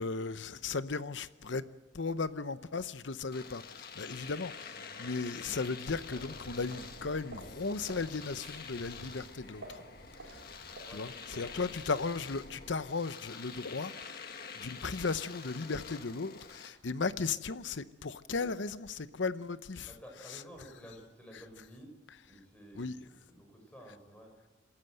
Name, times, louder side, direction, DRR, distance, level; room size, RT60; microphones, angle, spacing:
voice 1, 0.0-1.7 1.9-9.8 10.2-19.9 22.7-23.0, left 4 dB, 70° left, 0.8 m, -36 dB
Domestic sounds home sounds, 3.3-16.7, left 5 dB, 50° left, 1.7 m, -47 dB
voice 2, 4.6-5.0 10.8-11.1 11.5-11.7 19.8-21.9 22.2-24.3, equal, 5° left, 5.4 m, -52 dB
sound 1, 5.9-12.9, right 1 dB, 90° right, 3.7 m, -51 dB
27.0 x 13.5 x 7.7 m
head